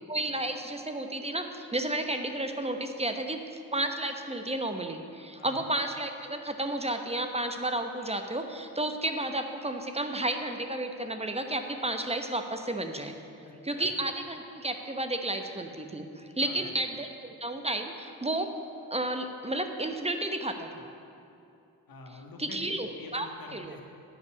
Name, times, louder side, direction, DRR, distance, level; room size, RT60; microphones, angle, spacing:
voice 1, 0.1-3.4 3.7-13.2 13.6-18.5 18.9-20.9 22.4-23.8, right 1 dB, 15° right, 6 dB, 1.0 m, -32 dB
voice 2, 13.4-13.9 16.4-16.7 21.9-22.6 23.0-23.8, left 3 dB, 50° left, 2 dB, 1.7 m, -47 dB
10.5 x 5.4 x 8.4 m, 2.6 s
hypercardioid pair, 40°, 43 cm